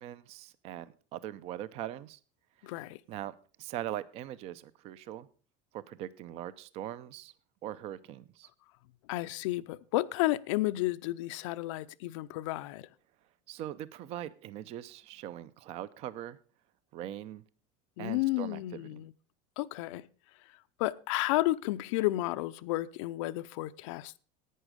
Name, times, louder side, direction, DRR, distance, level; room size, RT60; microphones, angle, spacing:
voice 1, 0.0-2.2 3.1-5.3 5.7-7.3 7.6-8.5 13.5-16.4 16.9-17.4 18.0-19.0, right 12 dB, 40° right, 0.6 m, -41 dB
voice 2, 2.6-3.0 9.1-12.9 18.0-19.1 19.6-20.1 20.8-24.2, left 18 dB, 80° left, 0.6 m, -32 dB
11.0 x 9.1 x 5.1 m
cardioid pair, 165°, 16 cm